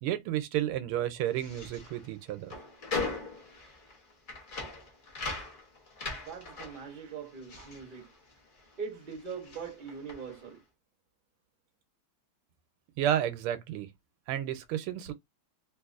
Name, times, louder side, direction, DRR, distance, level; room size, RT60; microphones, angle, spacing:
voice 1, 0.0-2.5 13.0-13.9 14.3-15.1, right 11 dB, 90° right, 1.6 m, -31 dB
sound 1, 1.2-8.8 9.0-10.5, left 3 dB, 65° left, 0.4 m, -40 dB
voice 2, 6.2-8.1 8.8-10.6, right 6 dB, 40° right, 0.7 m, -41 dB
3.4 x 2.9 x 2.4 m
omnidirectional pair, 2.4 m